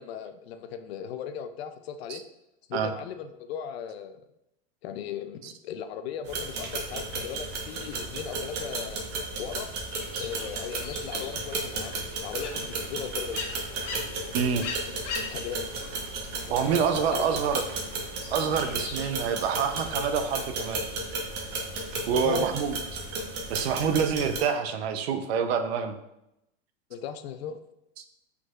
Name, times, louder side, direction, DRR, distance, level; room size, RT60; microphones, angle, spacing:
voice 1, 0.0-2.2 2.7-4.2 4.8-9.0 9.4-9.7 10.2-13.4 14.9-15.9 16.5-17.4 22.2-22.5 26.9-27.6, left 8 dB, 60° left, 9 dB, 0.5 m, -37 dB
sound 1, 6.3-24.4, right 3 dB, 30° right, 0.8 m, -34 dB
sound 2, 9.9-19.1, left 5 dB, 80° left, 1.1 m, -41 dB
voice 2, 14.3-14.6 16.5-17.6 18.3-20.8 22.1-22.7 23.5-25.9, right 7 dB, 60° right, 8 dB, 0.6 m, -27 dB
5.1 x 3.9 x 2.3 m, 0.84 s
supercardioid pair, 165°, 36 cm